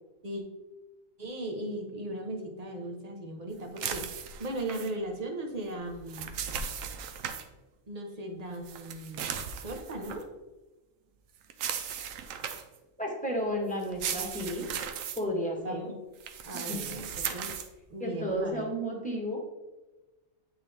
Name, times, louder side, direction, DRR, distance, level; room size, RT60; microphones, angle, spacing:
voice 1, 1.2-6.4 7.9-10.3 15.6-15.9 16.4-17.6 17.9-18.7, right 1 dB, 35° right, 2 dB, 0.9 m, -37 dB
sound 1, 3.8-4.9 5.9-7.4 8.6-10.2 11.5-12.8 13.8-15.2 16.2-17.7, right 8 dB, 85° right, 1.0 m, -36 dB
voice 2, 13.0-14.6 15.2-15.9 16.5-16.8 18.0-19.4, equal, 5° left, -2 dB, 1.3 m, -32 dB
8.8 x 3.8 x 3.4 m, 1.1 s
omnidirectional pair, 1.3 m